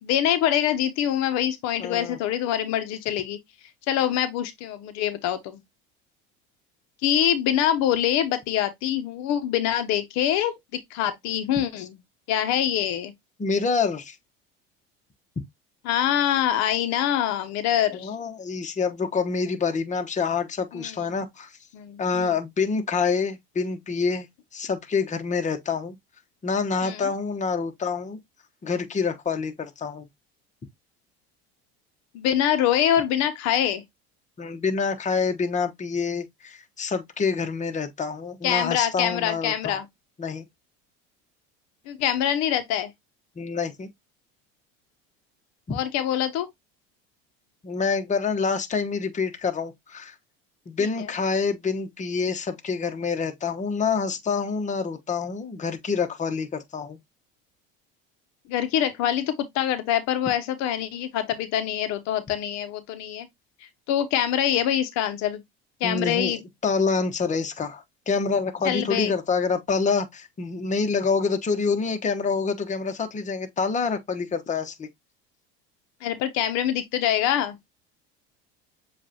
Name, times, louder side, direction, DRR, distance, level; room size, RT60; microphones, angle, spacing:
voice 1, 0.0-3.4 3.9-5.6 7.0-12.0 12.3-13.1 15.8-18.1 20.7-21.0 21.7-22.3 26.8-27.1 32.1-33.8 38.4-39.9 41.9-42.9 45.7-46.5 50.8-50.9 58.5-63.3 63.9-65.4 65.8-66.4 68.6-69.1 76.0-77.6, left 10 dB, 65° left, 0.8 m, -25 dB
voice 2, 1.8-2.2 13.4-14.2 17.9-21.5 22.0-24.3 24.5-26.0 26.4-28.2 28.6-30.1 34.4-39.8 40.2-40.4 43.4-43.9 45.7-45.8 47.6-50.1 50.7-57.0 65.8-66.4 66.6-74.9, left 5 dB, 25° left, 1.0 m, -27 dB
7.3 x 2.5 x 2.8 m
supercardioid pair, 95°, 30 cm